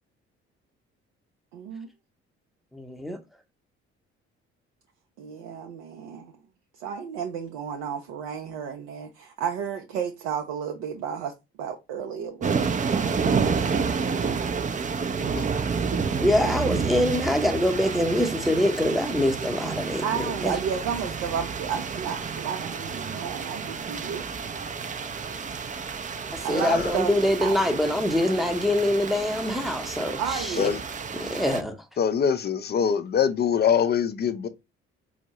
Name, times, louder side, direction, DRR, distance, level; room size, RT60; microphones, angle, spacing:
voice 1, 1.5-1.9 5.2-6.3 6.8-11.3 11.6-12.7 16.4-16.5 20.0-24.6 26.4-27.6 30.2-30.8, right 7 dB, 65° right, 0.6 m, -32 dB
voice 2, 2.7-3.2 16.2-20.6 26.3-30.7 31.1-31.7, left 1 dB, ahead, 0.8 m, -24 dB
sound 1, 12.4-31.6, right 5 dB, 25° right, 0.5 m, -30 dB
voice 3, 26.6-26.9 30.6-30.8 32.0-34.5, left 7 dB, 30° left, 0.5 m, -24 dB
4.3 x 2.1 x 2.9 m
figure-of-eight pair, 45°, 32 cm